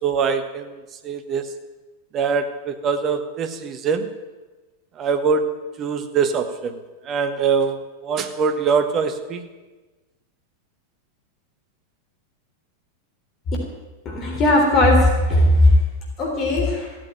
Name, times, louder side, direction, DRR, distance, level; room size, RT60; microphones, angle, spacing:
voice 1, 0.0-1.5 2.1-4.1 5.0-5.5 5.8-9.5, right 5 dB, 30° right, 9 dB, 1.4 m, -23 dB
voice 2, 14.1-15.7 16.2-16.9, left 1 dB, 35° left, 0 dB, 3.7 m, -17 dB
15.5 x 9.0 x 9.0 m, 1.2 s
figure-of-eight pair, 90°, 0 cm